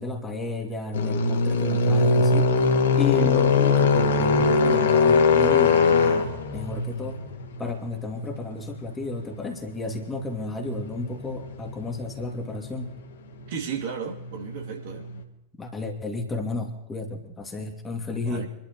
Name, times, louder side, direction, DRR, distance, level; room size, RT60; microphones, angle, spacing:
voice 1, 0.0-2.5 3.0-7.2 7.6-12.9 15.6-18.5, left 2 dB, 15° left, 2.5 m, -32 dB
sound 1, 0.9-15.2, left 4 dB, 60° left, 2.2 m, -23 dB
voice 2, 13.5-15.1 18.3-18.5, right 6 dB, 50° right, 3.0 m, -33 dB
27.0 x 12.5 x 3.1 m
figure-of-eight pair, 90°, 0 cm